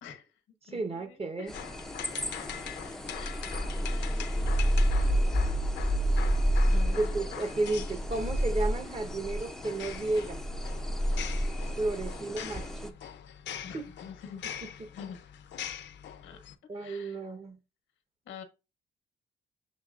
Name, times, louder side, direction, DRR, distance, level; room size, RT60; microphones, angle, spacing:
voice 1, 0.0-2.0 3.2-3.4 3.9-4.9 6.7-7.2 13.6-14.4 14.9-15.2 16.2-16.4 16.7-17.3 18.2-18.4, left 7 dB, 85° left, 1.0 m, -47 dB
voice 2, 0.7-1.5 6.9-10.4 11.8-12.9 13.7-13.9 14.8-14.9 16.7-17.6, right 2 dB, 30° right, 1.0 m, -32 dB
sound 1, 1.5-16.6, left 9 dB, 65° left, 0.6 m, -43 dB
sound 2, 1.5-12.9, equal, ahead, 0.5 m, -30 dB
7.3 x 2.9 x 2.4 m
cardioid pair, 90°, 20 cm